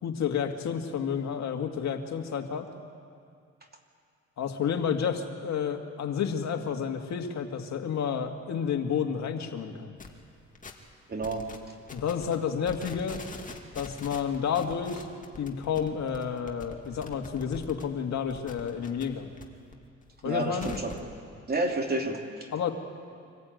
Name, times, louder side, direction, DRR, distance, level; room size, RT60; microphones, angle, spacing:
voice 1, 0.0-2.7 4.4-9.9 11.9-13.2 13.8-15.1 15.4-19.3 20.2-20.8 22.5-22.7, left 7 dB, 65° left, 4 dB, 2.1 m, -30 dB
sound 1, 10.0-10.1 10.5-10.9 11.2-11.6 11.9-12.4 12.6-17.8 18.2-19.4 19.7-21.1, left 3 dB, 25° left, 2.5 m, -44 dB
voice 2, 11.1-11.5 20.2-21.0 21.5-22.5, right 2 dB, 30° right, 2 dB, 3.0 m, -30 dB
25.0 x 15.0 x 9.3 m, 2.3 s
cardioid pair, 90°, 30 cm